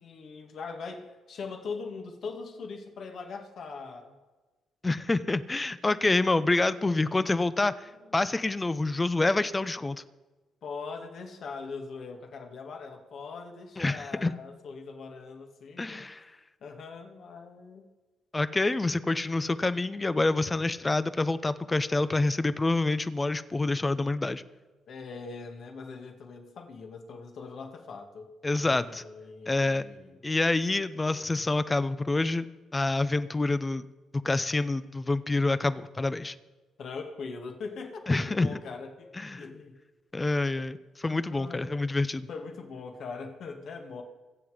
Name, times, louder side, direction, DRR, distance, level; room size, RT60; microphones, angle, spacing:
voice 1, 0.0-4.2 10.6-16.3 16.6-17.9 24.9-28.3 28.5-30.2 36.8-39.1 39.4-39.8 41.1-41.9 42.3-44.0, left 4 dB, 65° left, 3 dB, 2.2 m, -41 dB
voice 2, 4.8-10.0 13.8-14.3 15.8-16.3 18.3-24.4 28.4-29.0 29.5-29.8 30.2-32.5 32.7-33.9 34.2-36.3 38.1-38.5 39.1-39.5 40.1-42.3, left 2 dB, 20° left, 14 dB, 0.7 m, -27 dB
22.5 x 7.9 x 5.1 m, 1.2 s
cardioid pair, 90°, 0 cm